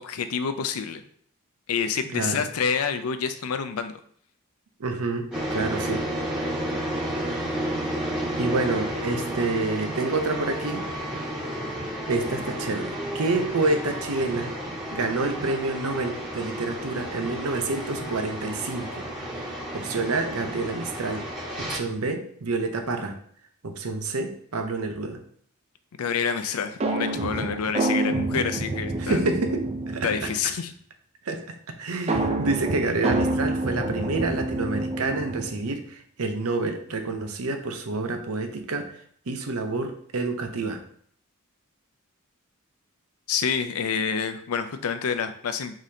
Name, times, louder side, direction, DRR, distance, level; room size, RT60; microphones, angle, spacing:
voice 1, 0.0-1.0 1.7-3.9 26.0-29.2 30.0-30.7 43.3-45.8, left 6 dB, 80° left, 9 dB, 0.5 m, -28 dB
voice 2, 2.1-2.5 4.8-6.0 8.4-10.9 12.1-14.5 14.9-21.2 21.6-23.2 23.6-25.2 29.0-30.1 31.2-38.9 39.3-40.8, right 3 dB, 80° right, 6 dB, 0.7 m, -28 dB
sound 1, 5.3-21.8, equal, 5° right, 1.4 m, -32 dB
sound 2, 26.8-30.5 32.1-35.7, right 2 dB, 30° right, 0.4 m, -27 dB
5.0 x 3.7 x 2.8 m, 0.62 s
head